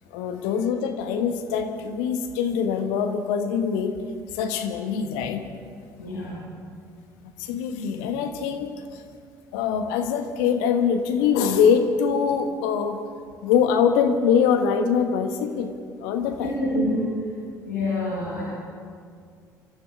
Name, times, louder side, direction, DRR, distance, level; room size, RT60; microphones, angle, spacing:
voice 1, 0.1-4.0 4.3-5.4 7.4-9.0 9.5-13.0 13.4-16.5, left 7 dB, 65° left, 6 dB, 1.4 m, -23 dB
voice 2, 6.0-6.4 16.3-17.1 17.6-18.4, left 1 dB, 85° left, -8 dB, 4.7 m, -27 dB
28.0 x 14.0 x 3.7 m, 2.2 s
figure-of-eight pair, 55°, 10 cm